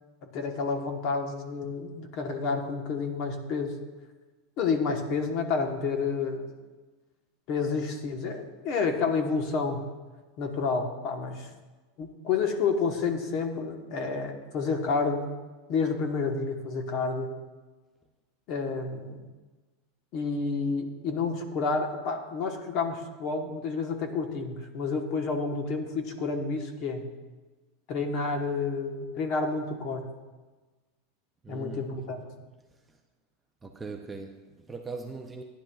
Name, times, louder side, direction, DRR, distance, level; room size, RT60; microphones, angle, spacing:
voice 1, 0.2-3.7 4.6-6.5 7.5-9.8 10.4-11.5 12.0-15.3 15.7-17.3 18.5-19.2 20.1-27.1 27.9-30.1 31.5-32.3, left 4 dB, 35° left, 5 dB, 1.0 m, -30 dB
voice 2, 31.4-31.9 33.6-35.4, right 4 dB, 10° right, 3 dB, 0.4 m, -40 dB
15.0 x 10.0 x 2.3 m, 1.3 s
supercardioid pair, 175°, 0 cm